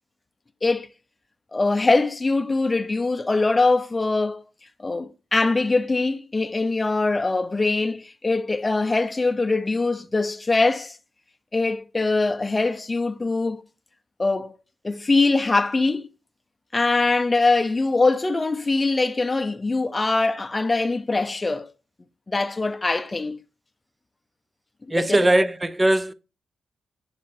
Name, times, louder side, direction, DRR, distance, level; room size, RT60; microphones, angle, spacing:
voice 1, 1.5-4.4 4.8-11.0 11.5-13.6 14.2-14.5 14.8-16.1 16.7-21.7 22.3-23.4 24.9-25.3, left 3 dB, 25° left, 0.7 m, -22 dB
voice 2, 24.9-26.1, right 1 dB, 20° right, 0.5 m, -20 dB
7.7 x 7.2 x 2.7 m
cardioid pair, 80°, 0 cm